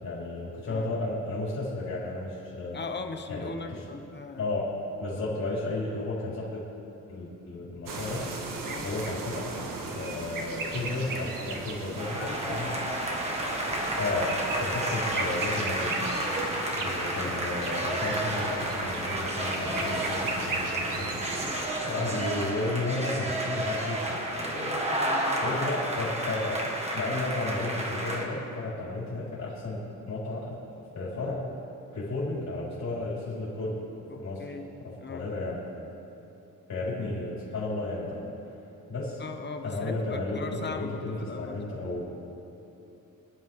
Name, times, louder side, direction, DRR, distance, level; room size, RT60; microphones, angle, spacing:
voice 1, 0.0-2.8 3.3-3.9 4.4-6.6 7.1-8.3 8.8-9.7 9.9-12.8 14.0-16.0 16.8-21.2 21.8-24.7 25.4-30.6 30.9-31.5 31.9-33.8 34.1-34.4 34.8-35.6 36.7-38.3 38.9-39.2 39.6-42.0, left 2 dB, 60° left, -8 dB, 4.3 m, -33 dB
voice 2, 2.7-4.5 8.6-8.8 12.1-13.0 16.8-17.3 21.4-21.7 24.7-25.7 34.1-34.7 35.0-35.2 39.2-41.9, left 4 dB, 35° left, 6 dB, 1.0 m, -40 dB
sound 1, 7.9-21.7, right 3 dB, 90° right, 1.9 m, -36 dB
sound 2, 12.0-28.2, right 1 dB, 20° right, 1.7 m, -31 dB
25.5 x 11.5 x 3.7 m, 2.9 s
wide cardioid pair, 175°, 32 cm